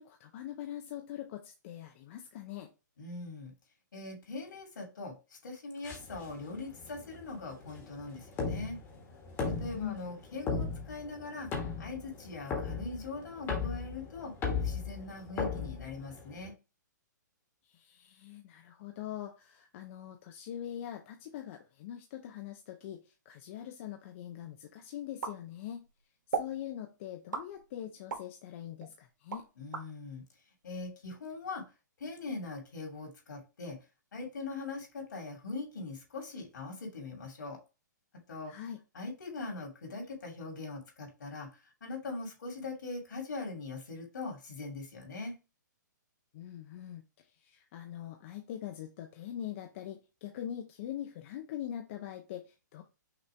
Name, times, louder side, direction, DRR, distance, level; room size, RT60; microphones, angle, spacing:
voice 1, 0.0-2.7 9.7-10.0 17.7-25.8 26.3-29.4 38.5-38.8 46.3-47.0 47.4-52.8, left 11 dB, 40° left, 3 dB, 0.7 m, -43 dB
voice 2, 3.0-3.5 3.9-5.1 5.4-8.8 9.4-11.5 11.8-14.3 14.6-16.5 29.6-30.2 30.6-31.6 32.0-33.8 34.1-37.6 38.3-38.5 38.9-41.5 41.8-45.3, left 3 dB, 75° left, 1 dB, 2.8 m, -41 dB
sound 1, 5.8-16.5, left 5 dB, 20° left, 1.4 m, -38 dB
sound 2, 25.2-25.9 26.3-26.6 27.3-28.3 28.8-29.9, right 5 dB, 75° right, 1.4 m, -37 dB
5.9 x 2.7 x 3.4 m, 0.29 s
hypercardioid pair, 145°, 10 cm